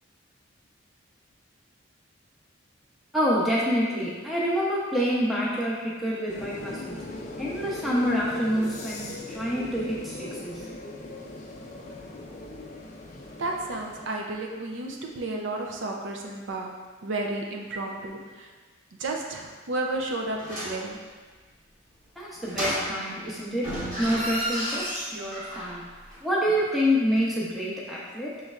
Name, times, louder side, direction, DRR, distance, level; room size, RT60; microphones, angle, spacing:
voice 1, 3.1-7.0 7.4-10.7 22.2-25.9 26.2-28.4, equal, ahead, -7 dB, 0.7 m, -27 dB
sound 1, 6.3-14.1, left 1 dB, 35° left, 0.4 m, -39 dB
voice 2, 13.4-18.5 19.0-21.0, right 2 dB, 65° right, 1 dB, 0.5 m, -32 dB
sound 2, 20.4-20.9 22.5-23.2 23.6-25.8 26.1-26.2, equal, 40° right, 1.2 m, -32 dB
6.3 x 3.1 x 2.4 m, 1.4 s
head